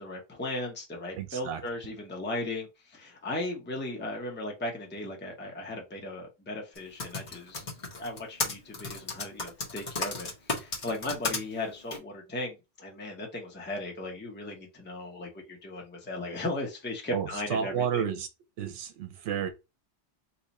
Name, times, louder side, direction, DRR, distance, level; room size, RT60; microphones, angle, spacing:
voice 1, 0.0-18.1, left 1 dB, 10° left, 0.7 m, -37 dB
voice 2, 1.2-1.6 17.1-18.3 18.6-19.5, right 7 dB, 80° right, 0.9 m, -31 dB
Typing, 6.8-11.4 11.9-12.0, left 3 dB, 45° left, 0.9 m, -33 dB
2.8 x 2.4 x 4.0 m
omnidirectional pair, 1.2 m